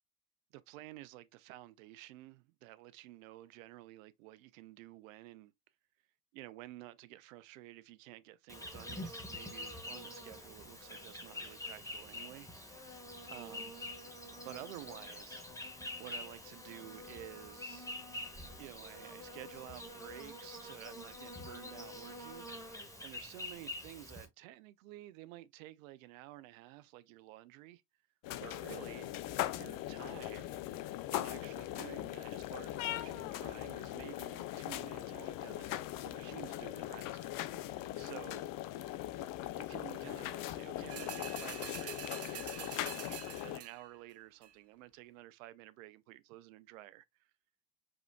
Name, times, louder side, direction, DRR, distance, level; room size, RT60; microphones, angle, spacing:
voice 1, 0.5-5.5 6.3-13.0 13.3-13.7 14.4-15.4 16.0-17.9 18.6-22.5 23.0-27.8 28.4-29.1 29.5-30.6 31.1-38.5 39.5-47.3, right 16 dB, 70° right, 0.6 m, -52 dB
Insect, 8.5-24.2, left 1 dB, 10° left, 1.5 m, -46 dB
sound 1, 28.2-43.6, left 14 dB, 50° left, 0.6 m, -40 dB
sound 2, 40.9-44.0 44.4-44.5, right 9 dB, 35° right, 0.8 m, -46 dB
4.9 x 4.0 x 2.3 m
figure-of-eight pair, 45°, 42 cm